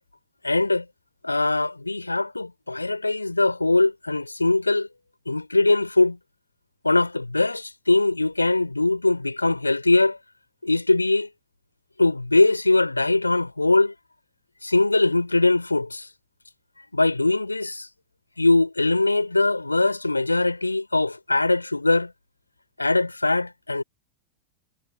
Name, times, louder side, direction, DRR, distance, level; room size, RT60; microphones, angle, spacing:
voice 1, 0.4-0.9 1.2-4.9 5.3-6.2 6.8-10.2 10.6-11.3 12.0-13.9 14.6-16.1 16.9-17.9 18.4-22.1 22.8-23.8, left 2 dB, 85° left, 5.5 m, -21 dB
figure-of-eight pair, 90°, 0 cm